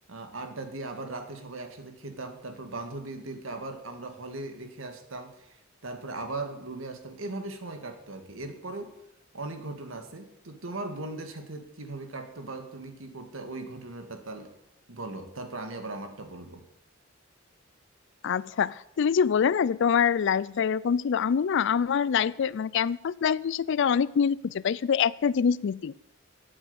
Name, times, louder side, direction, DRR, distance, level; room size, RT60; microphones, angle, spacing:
voice 1, 0.1-8.9 9.3-14.5 14.9-16.6, right 2 dB, 85° right, 7 dB, 1.7 m, -38 dB
voice 2, 18.2-26.0, left 7 dB, 65° left, 21 dB, 0.4 m, -25 dB
8.7 x 7.9 x 8.6 m, 0.82 s
head